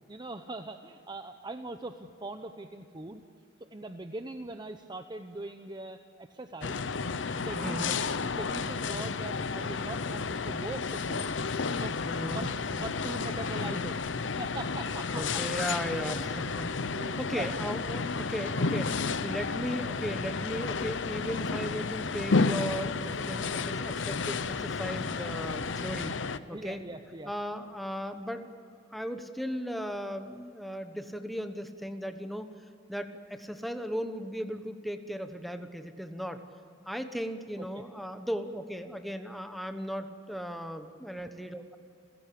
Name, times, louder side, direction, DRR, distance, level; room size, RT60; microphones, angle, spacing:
voice 1, 0.1-3.2 3.7-6.8 7.4-8.0 8.3-11.4 11.7-12.0 12.3-14.0 14.4-15.4 16.9-17.5 18.4-18.5 26.5-27.3 37.7-37.8, right 2 dB, 25° right, 7 dB, 0.8 m, -41 dB
sound 1, 6.6-26.4, left 4 dB, 80° left, 0.8 m, -32 dB
voice 2, 7.6-8.0 12.1-12.5 15.1-26.2 26.5-26.8 27.2-28.5 28.9-32.5 32.9-36.4 36.9-41.8, equal, ahead, 7 dB, 1.1 m, -37 dB
29.0 x 16.0 x 8.6 m, 2.5 s
head